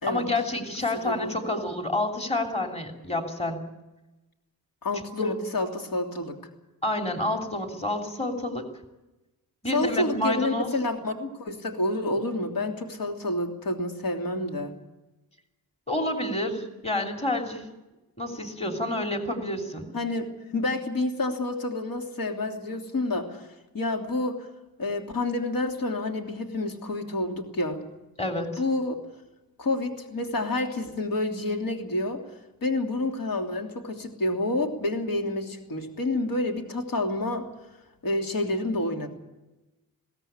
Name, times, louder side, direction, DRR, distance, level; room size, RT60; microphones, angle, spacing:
voice 1, 0.1-3.6 5.2-5.3 6.8-8.6 9.6-10.7 15.9-17.7 18.2-19.9 28.2-28.5, left 1 dB, 15° left, 3 dB, 3.0 m, -29 dB
voice 2, 1.0-1.6 4.8-6.3 9.7-14.7 19.9-23.5 23.7-24.5 24.8-27.8 28.6-29.0 29.6-32.2 32.6-37.5 38.0-39.1, left 2 dB, 65° left, 2 dB, 3.1 m, -29 dB
22.0 x 17.0 x 8.8 m, 1.0 s
wide cardioid pair, 140°, 36 cm